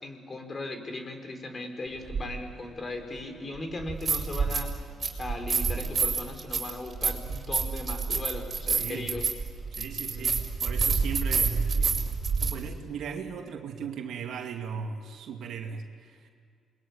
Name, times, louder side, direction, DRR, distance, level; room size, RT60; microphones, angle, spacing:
voice 1, 0.0-4.7 5.2-9.3 10.1-10.3, left 2 dB, 35° left, 5 dB, 4.7 m, -38 dB
sound 1, 2.1-2.2 3.8-4.7 5.0-12.5, right 5 dB, 40° right, 5.2 m, -28 dB
voice 2, 8.7-9.1 9.7-12.0 12.4-16.3, right 6 dB, 75° right, 3 dB, 2.4 m, -37 dB
28.0 x 22.0 x 9.7 m, 2.1 s
cardioid pair, 90°, 0 cm